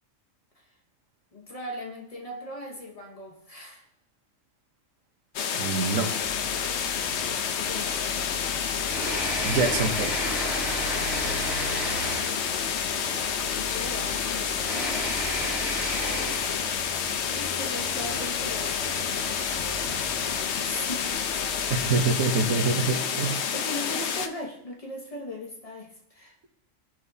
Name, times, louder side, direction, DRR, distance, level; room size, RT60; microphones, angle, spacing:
voice 1, 1.3-3.9 6.5-6.8 7.7-8.2 12.2-16.5 17.3-21.4 22.7-22.8 23.5-26.3, left 1 dB, 30° left, 0 dB, 1.1 m, -40 dB
sound 1, 5.4-24.3, left 7 dB, 65° left, 0.9 m, -29 dB
voice 2, 5.5-6.1 9.4-10.4 21.7-23.4, right 4 dB, 85° right, 4 dB, 1.4 m, -26 dB
sound 2, 6.2-21.9, equal, ahead, 3.9 m, -35 dB
17.5 x 5.9 x 2.7 m, 0.79 s
omnidirectional pair, 1.3 m